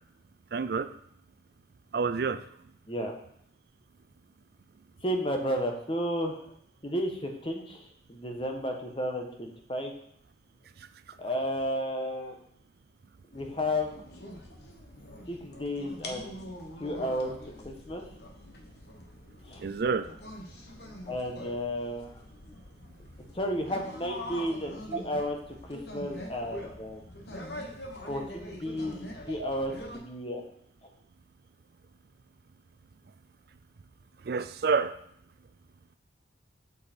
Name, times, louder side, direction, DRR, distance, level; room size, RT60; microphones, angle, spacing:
voice 1, 0.5-0.9 1.9-2.4 19.6-20.1 29.4-29.5 34.3-34.9, right 5 dB, 55° right, 12 dB, 0.4 m, -28 dB
voice 2, 5.0-6.5 6.8-9.9 11.2-12.4 13.3-13.9 15.3-16.4 16.8-17.3 17.6-18.0 19.4-19.6 21.1-22.2 23.3-25.4 25.7-27.0 28.0-30.4, equal, 30° left, 3 dB, 1.2 m, -32 dB
sound 1, 13.3-30.0, left 1 dB, 60° left, 1.3 m, -44 dB
7.9 x 6.8 x 4.4 m, 0.69 s
head